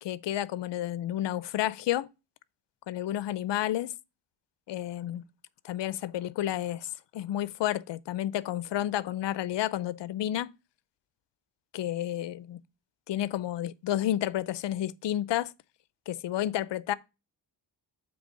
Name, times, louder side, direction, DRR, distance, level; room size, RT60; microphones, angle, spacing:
voice 1, 0.0-2.1 2.9-3.9 4.7-5.2 5.6-10.5 11.7-12.6 13.1-15.5 16.1-16.9, left 12 dB, 70° left, 0.6 m, -31 dB
8.0 x 3.4 x 5.2 m
cardioid pair, 100°, 44 cm